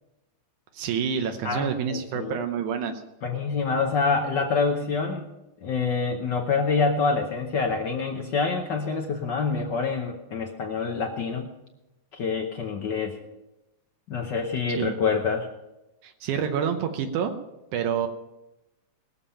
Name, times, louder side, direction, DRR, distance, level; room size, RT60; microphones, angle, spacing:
voice 1, 0.7-3.0 14.7-15.0 16.0-17.3 17.7-18.1, right 7 dB, 85° right, 6 dB, 2.3 m, -28 dB
voice 2, 1.4-2.4 3.2-5.3 5.6-11.5 12.1-13.2 14.1-15.5, left 4 dB, 70° left, 3 dB, 1.0 m, -26 dB
20.5 x 7.1 x 5.7 m, 0.96 s
omnidirectional pair, 3.4 m